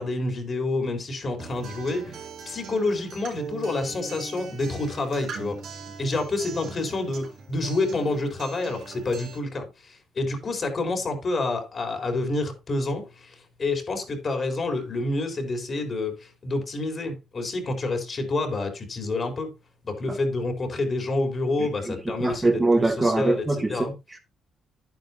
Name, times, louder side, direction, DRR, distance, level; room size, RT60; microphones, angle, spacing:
voice 1, 0.0-5.6 6.0-19.5 19.8-23.9, left 2 dB, 40° left, 4.1 m, -28 dB
Acoustic guitar, 1.4-9.4, right 5 dB, 70° right, 3.9 m, -40 dB
voice 2, 21.6-24.2, right 2 dB, 20° right, 2.7 m, -24 dB
11.0 x 9.7 x 2.9 m
cardioid pair, 90°, 0 cm